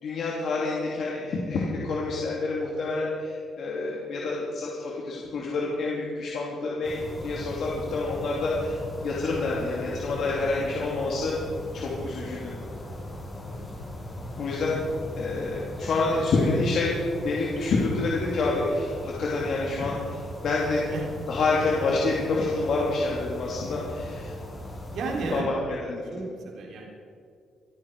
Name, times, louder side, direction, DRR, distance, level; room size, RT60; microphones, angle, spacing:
voice 1, 0.0-11.4 11.7-12.5 14.4-14.8 15.2-20.8 21.3-24.3 25.3-26.2, left 3 dB, 60° left, -4 dB, 2.8 m, -28 dB
sound 1, 6.8-25.4, left 1 dB, 30° left, 4.9 m, -38 dB
voice 2, 20.7-21.1 24.9-25.8 26.1-26.9, right 3 dB, 75° right, -1 dB, 3.5 m, -34 dB
26.0 x 9.6 x 4.8 m, 2.4 s
cardioid pair, 90°, 0 cm